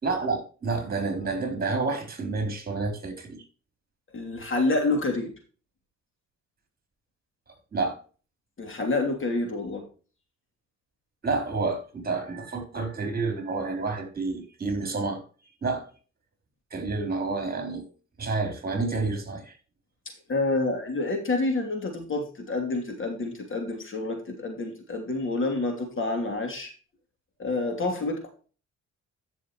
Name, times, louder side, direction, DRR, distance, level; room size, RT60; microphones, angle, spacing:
voice 1, 0.0-3.4 7.7-8.0 11.2-15.2 15.6-15.9 16.7-17.9 18.2-19.6, right 3 dB, 30° right, 4.0 m, -29 dB
voice 2, 4.1-5.3 8.6-9.8 20.3-26.7 27.4-28.2, left 2 dB, 40° left, 2.9 m, -28 dB
14.0 x 6.4 x 3.1 m
cardioid pair, 90°, 30 cm